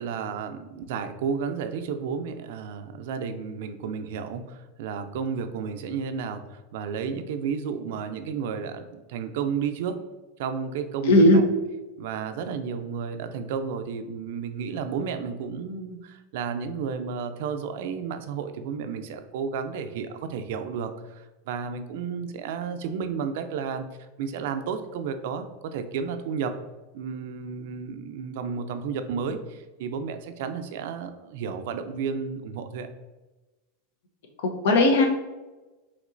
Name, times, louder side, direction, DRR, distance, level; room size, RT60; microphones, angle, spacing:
voice 1, 0.0-10.0 10.4-11.5 12.0-23.8 24.2-26.6 26.9-32.9, right 6 dB, 70° right, 9 dB, 0.4 m, -32 dB
voice 2, 11.1-11.4 34.4-35.1, left 1 dB, 75° left, 4 dB, 0.7 m, -17 dB
5.1 x 2.9 x 2.5 m, 1.1 s
hypercardioid pair, 115°, 0 cm